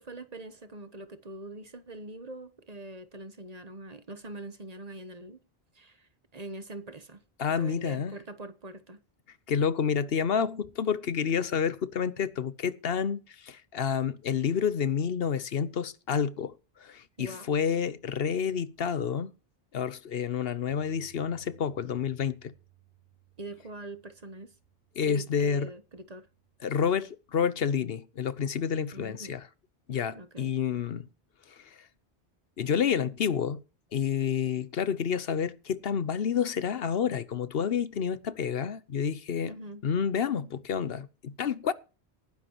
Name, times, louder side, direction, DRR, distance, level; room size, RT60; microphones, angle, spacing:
voice 1, 0.0-5.4 5.7-7.2 7.5-9.0 17.2-17.5 23.4-24.5 25.0-26.3 28.9-29.4 30.1-30.5 39.4-39.8, right 2 dB, 40° right, 1.1 m, -43 dB
voice 2, 7.4-8.2 9.5-19.3 19.7-22.5 25.0-25.7 26.6-29.5 29.9-31.1 31.5-31.9 32.6-33.6 33.9-39.5 39.8-41.7, left 7 dB, 70° left, 1.0 m, -29 dB
Bass guitar, 20.7-26.9, right 13 dB, 50° left, 3.2 m, -62 dB
19.0 x 10.5 x 3.0 m
omnidirectional pair, 1.0 m